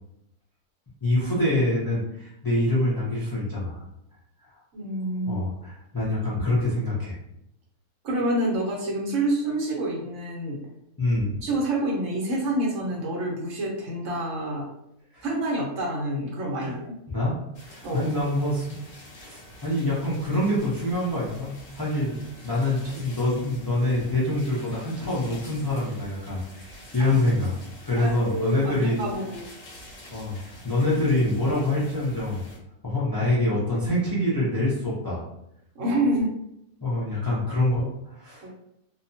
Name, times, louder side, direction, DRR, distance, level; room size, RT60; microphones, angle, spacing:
voice 1, 1.0-3.8 5.3-7.2 11.0-11.3 15.1-15.3 16.6-16.8 17.1-17.3 17.6-18.7 19.2-22.1 22.4-27.6 27.8-29.0 30.1-32.4 32.8-35.2 36.8-38.5, left 1 dB, 35° left, -7 dB, 0.3 m, -25 dB
voice 2, 4.7-5.5 8.0-10.6 11.4-14.7 15.2-16.9 17.8-18.1 27.0-27.2 28.0-29.4 35.7-36.3 38.4-38.5, right 1 dB, 60° right, -2 dB, 1.0 m, -27 dB
sound 1, 17.5-32.6, left 1 dB, 55° left, 1.1 m, -47 dB
2.7 x 2.2 x 2.6 m, 0.79 s
omnidirectional pair, 1.6 m